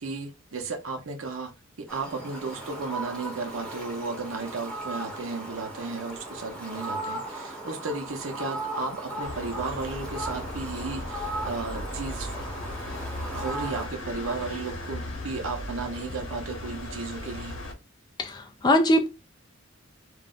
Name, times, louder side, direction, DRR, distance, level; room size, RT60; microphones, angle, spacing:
voice 1, 0.0-1.5 1.8-12.3 12.8-13.0 13.3-17.6, right 3 dB, 80° right, 0.8 m, -34 dB
Fowl, 1.9-13.9, right 2 dB, 5° left, 0.9 m, -37 dB
sound 1, 9.2-17.7, left 1 dB, 70° left, 1.0 m, -37 dB
voice 2, 18.2-19.1, left 1 dB, 20° left, 0.4 m, -22 dB
2.6 x 2.1 x 3.7 m
head